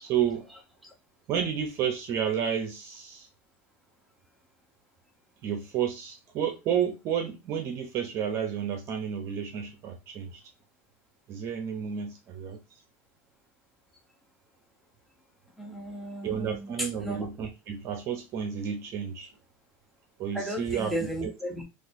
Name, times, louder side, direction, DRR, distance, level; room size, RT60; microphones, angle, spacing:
voice 1, 0.0-0.4 1.3-3.3 5.4-10.4 11.3-12.6 16.2-19.3 20.2-21.0, right 8 dB, 40° right, 0.6 m, -31 dB
voice 2, 15.6-17.3 20.3-21.6, equal, ahead, 0.8 m, -34 dB
4.0 x 2.5 x 2.6 m
cardioid pair, 155°, 7 cm